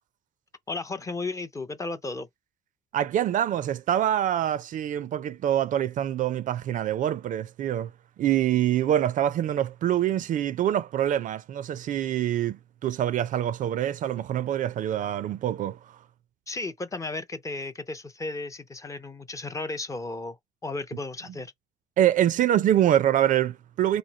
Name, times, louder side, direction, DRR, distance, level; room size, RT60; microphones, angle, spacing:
voice 1, 0.7-2.3 16.5-20.4 20.6-21.5, left 3 dB, 20° left, 0.4 m, -34 dB
voice 2, 2.9-7.9 8.2-15.8 22.0-24.0, right 11 dB, 50° right, 0.4 m, -25 dB
3.0 x 2.6 x 3.9 m
cardioid pair, 110°, 17 cm